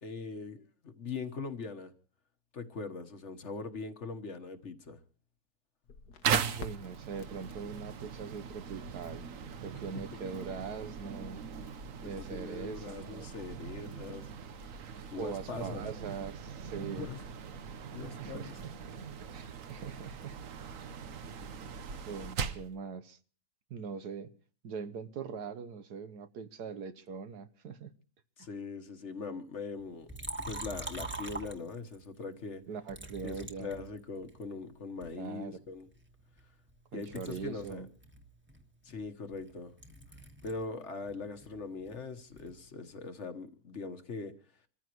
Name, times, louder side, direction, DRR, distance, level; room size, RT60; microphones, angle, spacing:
voice 1, 0.0-1.9 2.5-5.0 10.1-10.2 12.0-14.3 15.1-15.8 16.9-17.2 17.9-18.6 28.4-30.1 30.4-32.6 33.2-35.9 36.9-37.9 38.8-39.7 40.4-44.4, left 4 dB, 50° left, 1.5 m, -41 dB
Crackle, 5.8-12.5, left 4 dB, 75° left, 1.7 m, -54 dB
sound 1, 6.2-22.7, right 7 dB, 60° right, 1.2 m, -40 dB
voice 2, 6.6-9.2 9.6-11.4 12.0-13.3 15.2-17.1 18.2-18.7 19.3-20.4 22.1-23.2 23.7-24.3 24.6-27.9 28.4-28.5 32.7-33.7 35.1-35.6 36.9-37.9, right 6 dB, 90° right, 1.6 m, -42 dB
Liquid, 30.1-32.1 32.9-34.4 35.0-36.7 37.0-40.7 41.0-42.6, right 2 dB, 5° right, 1.5 m, -44 dB
27.0 x 14.5 x 3.0 m
omnidirectional pair, 1.7 m